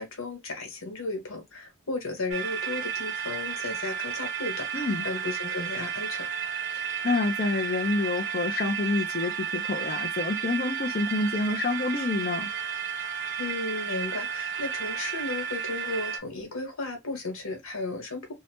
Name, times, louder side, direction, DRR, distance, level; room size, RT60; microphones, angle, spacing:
voice 1, 0.0-6.3 13.3-18.3, left 3 dB, 85° left, 1.3 m, -34 dB
sound 1, 2.3-16.2, right 7 dB, 60° right, 0.7 m, -32 dB
voice 2, 4.7-5.0 6.8-12.5, left 3 dB, 45° left, 0.4 m, -28 dB
2.8 x 2.1 x 2.8 m
head